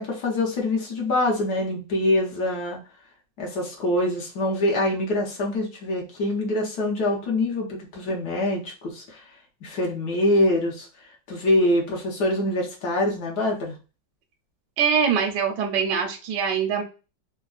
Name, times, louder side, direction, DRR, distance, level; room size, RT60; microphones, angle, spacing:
voice 1, 0.0-2.8 3.4-9.2 9.6-10.9 11.3-13.7, left 1 dB, 60° left, -1 dB, 1.3 m, -24 dB
voice 2, 14.8-16.8, right 7 dB, 75° right, 3 dB, 1.1 m, -23 dB
3.4 x 2.1 x 2.3 m, 0.32 s
omnidirectional pair, 2.1 m